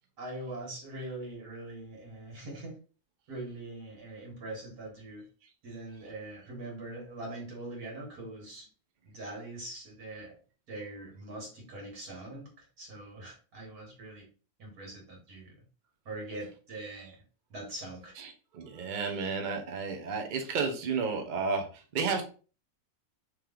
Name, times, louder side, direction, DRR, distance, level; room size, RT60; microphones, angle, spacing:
voice 1, 0.2-2.7 3.3-5.2 5.6-8.7 9.0-10.4 10.7-14.3 14.6-15.5 16.1-17.2 17.5-18.1, right 2 dB, 80° right, -1 dB, 2.0 m, -42 dB
voice 2, 18.2-22.2, right 5 dB, 50° right, 3 dB, 0.5 m, -32 dB
3.2 x 3.0 x 3.7 m, 0.37 s
omnidirectional pair, 1.6 m